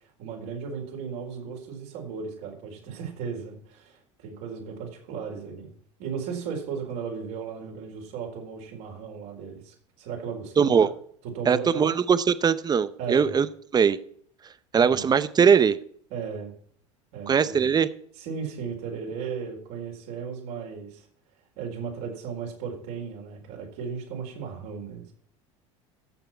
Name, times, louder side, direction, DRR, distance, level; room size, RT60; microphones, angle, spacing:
voice 1, 0.2-5.7 6.0-10.9 11.2-11.9 13.0-13.4 14.8-15.1 16.1-16.6 17.1-17.7 18.2-21.1 21.6-25.1, right 6 dB, 65° right, 1 dB, 4.4 m, -36 dB
voice 2, 10.6-10.9 11.5-13.5 13.7-14.0 14.7-15.8 17.3-17.9, right 6 dB, 25° right, 15 dB, 0.8 m, -20 dB
15.0 x 6.8 x 4.5 m, 0.62 s
hypercardioid pair, 85°, 16 cm